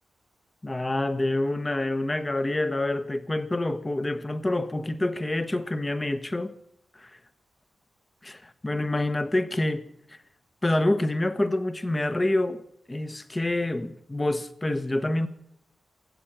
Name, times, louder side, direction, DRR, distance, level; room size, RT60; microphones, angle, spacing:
voice 1, 0.6-6.5 6.9-7.1 8.2-10.2 10.6-12.6 12.9-15.3, left 1 dB, 25° left, 1.1 m, -27 dB
16.5 x 7.7 x 8.8 m
supercardioid pair, 45°, 0 cm